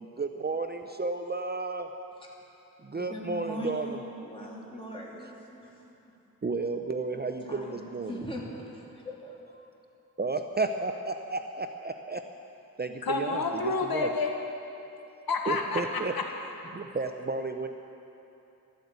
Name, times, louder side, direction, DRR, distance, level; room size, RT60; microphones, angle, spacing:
voice 1, 0.0-1.9 2.8-4.0 6.4-8.2 10.2-12.2 12.8-14.1 15.5-16.1 16.7-17.7, right 3 dB, 25° right, 6 dB, 0.6 m, -32 dB
voice 2, 2.9-5.3 5.6-5.8 7.4-9.3, equal, 15° left, -4 dB, 3.1 m, -40 dB
voice 3, 13.0-14.4 15.3-16.3, left 4 dB, 75° left, 2 dB, 1.6 m, -29 dB
13.5 x 13.0 x 8.1 m, 2.9 s
wide cardioid pair, 115°, 36 cm